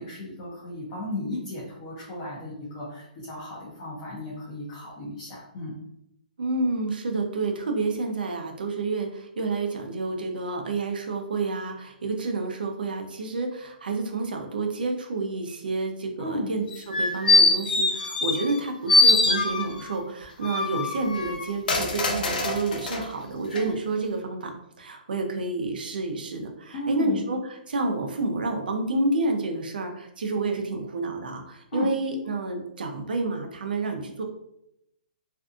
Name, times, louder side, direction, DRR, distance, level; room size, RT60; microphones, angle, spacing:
voice 1, 0.0-5.7 16.2-16.5 26.7-27.3 31.7-31.9, left 1 dB, 25° left, -6 dB, 0.6 m, -34 dB
voice 2, 6.4-34.2, right 3 dB, 80° right, 4 dB, 0.5 m, -29 dB
sound 1, 16.7-18.6 18.9-19.9 20.4-23.0 23.5-23.6, left 3 dB, 70° left, 0.5 m, -22 dB
2.6 x 2.4 x 2.4 m, 0.81 s
hypercardioid pair, 170°, 5 cm